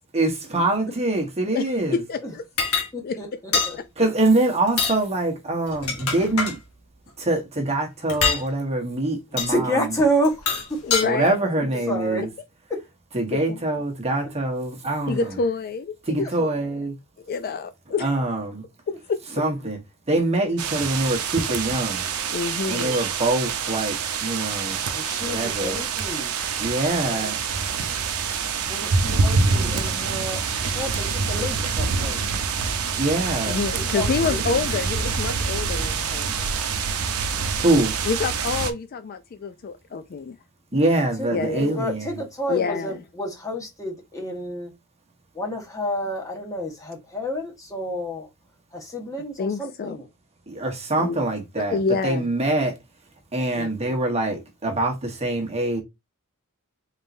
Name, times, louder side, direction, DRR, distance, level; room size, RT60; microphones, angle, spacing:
voice 1, 0.1-2.0 4.0-6.5 7.2-9.5 11.0-12.3 13.1-15.2 16.1-16.9 18.0-18.4 19.4-19.8 20.1-22.0 22.7-23.9 24.2-24.8 25.2-25.8 26.6-27.4 33.0-33.6 37.6-37.9 40.7-42.1 50.5-51.8 52.0-52.7 53.3-55.8, right 2 dB, 30° right, 1.1 m, -24 dB
voice 2, 1.5-2.4 3.0-3.2 3.8-3.9 10.8-11.7 13.3-13.6 15.1-16.5 17.2-18.2 18.9-19.2 22.3-23.0 33.4-36.3 38.0-40.4 40.7-40.8 41.3-41.8 42.5-43.0 49.4-50.0 51.0-51.2 51.6-52.3 53.5-53.7, left 4 dB, 40° left, 0.3 m, -28 dB
sound 1, 2.6-2.9 3.5-3.7 4.7-5.0 5.7-6.6 8.1-8.4 9.4-9.5 10.2-11.1, left 5 dB, 70° left, 1.3 m, -24 dB
voice 3, 2.9-3.8 9.3-10.4 11.6-12.2 12.7-12.8 15.0-15.4 16.2-16.4 18.9-19.0 24.9-26.3 27.0-27.3 28.6-32.2 33.7-34.4 41.2-44.7 45.3-48.3 48.7-50.1, equal, 15° left, 1.3 m, -29 dB
sound 2, 20.6-38.7, right 5 dB, 75° right, 0.7 m, -26 dB
4.0 x 3.6 x 2.6 m
head